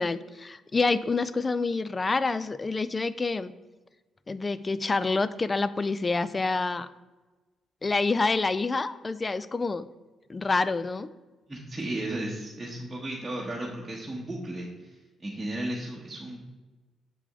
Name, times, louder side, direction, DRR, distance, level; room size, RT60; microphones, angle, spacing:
voice 1, 0.0-3.5 4.3-6.9 7.8-9.8 10.3-11.1, left 3 dB, 25° left, 15 dB, 0.3 m, -27 dB
voice 2, 11.5-16.4, right 1 dB, 15° right, -4 dB, 1.1 m, -35 dB
7.0 x 5.0 x 3.7 m, 1.2 s
cardioid pair, 90°, 0 cm